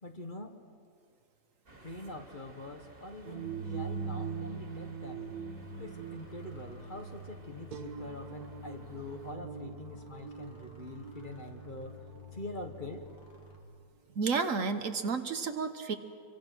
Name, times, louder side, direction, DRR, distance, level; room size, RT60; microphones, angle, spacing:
voice 1, 0.0-0.5 1.8-5.3 5.8-12.0 12.3-13.1, left 2 dB, 30° left, 4 dB, 1.6 m, -44 dB
sound 1, 1.7-9.4, right 2 dB, 35° right, 2.5 m, -56 dB
sound 2, 3.2-13.2, right 6 dB, 80° right, 1.8 m, -42 dB
sound 3, 5.2-13.6, left 5 dB, 60° left, 3.3 m, -51 dB
voice 2, 14.1-15.9, right 5 dB, 60° right, 8 dB, 1.5 m, -31 dB
27.5 x 24.0 x 6.2 m, 2.5 s
omnidirectional pair, 1.6 m